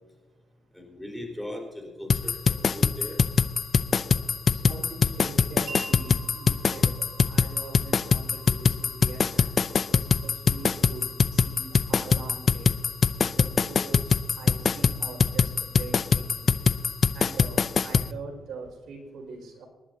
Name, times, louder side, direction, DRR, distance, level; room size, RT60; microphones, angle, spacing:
voice 1, 0.7-3.2, left 1 dB, 5° left, 1 dB, 4.4 m, -39 dB
sound 1, 2.1-18.1, left 6 dB, 45° left, 0.5 m, -23 dB
voice 2, 4.5-9.6 9.9-12.7 13.4-16.5 17.1-19.6, right 3 dB, 80° right, -1 dB, 5.6 m, -43 dB
Wind chime, 5.7-13.3, right 2 dB, 55° right, 2.0 m, -47 dB
27.5 x 11.5 x 2.8 m, 1.2 s
cardioid pair, 120°, 0 cm